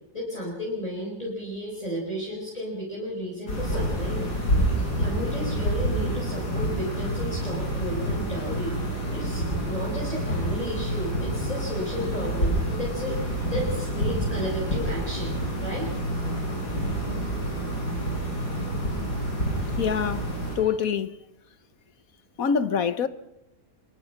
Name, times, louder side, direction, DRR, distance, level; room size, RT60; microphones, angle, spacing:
voice 1, 0.1-4.3 5.0-8.8 9.1-15.9, equal, 20° left, 5.4 m, -33 dB
sound 1, 3.5-20.6, right 1 dB, 80° left, 7.4 m, -28 dB
voice 2, 19.8-20.3 20.6-21.1 22.4-23.1, left 7 dB, 60° left, 1.4 m, -25 dB
25.0 x 22.0 x 5.9 m
omnidirectional pair, 1.7 m